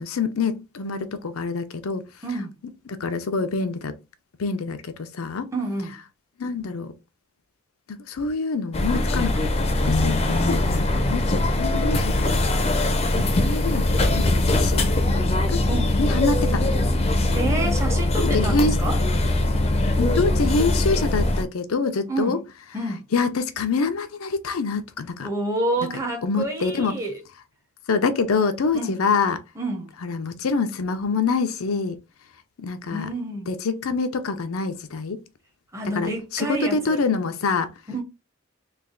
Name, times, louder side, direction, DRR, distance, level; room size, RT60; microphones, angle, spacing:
voice 1, 0.0-2.0 2.9-4.0 4.4-5.5 6.4-6.9 7.9-12.5 13.4-15.0 15.5-15.6 16.0-16.7 18.2-18.8 20.0-22.4 23.1-25.3 26.2-27.0 27.9-29.4 30.0-32.0 32.6-33.1 33.5-35.2 35.9-37.7, left 4 dB, 85° left, 0.5 m, -26 dB
voice 2, 2.2-2.6 5.5-6.0 13.1-13.4 15.7-16.0 17.3-19.0 22.1-22.4 22.7-23.1 25.2-27.2 28.7-29.0 29.6-29.9 32.9-33.5 35.7-37.0 37.9-38.0, right 2 dB, 15° right, 0.7 m, -28 dB
sound 1, 8.7-21.4, left 2 dB, 30° left, 0.5 m, -21 dB
3.3 x 2.3 x 3.6 m
head